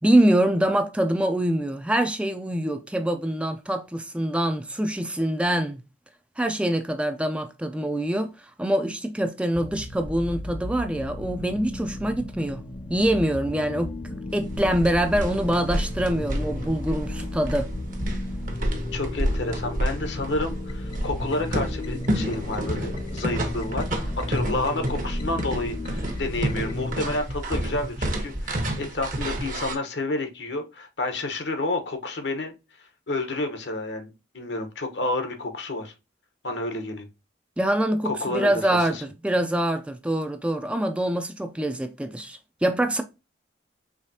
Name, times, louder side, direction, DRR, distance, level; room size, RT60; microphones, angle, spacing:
voice 1, 0.0-5.8 6.4-8.3 8.6-12.6 12.9-17.7 37.6-43.0, right 1 dB, 5° right, 0.4 m, -24 dB
sound 1, 9.5-27.0, left 2 dB, 30° left, 0.7 m, -34 dB
sound 2, 14.3-29.8, right 1 dB, 45° right, 1.0 m, -30 dB
voice 2, 18.9-23.9 24.2-32.5 33.1-35.9 36.4-37.1 38.0-39.0, left 2 dB, 70° left, 1.0 m, -30 dB
4.8 x 3.2 x 2.7 m
head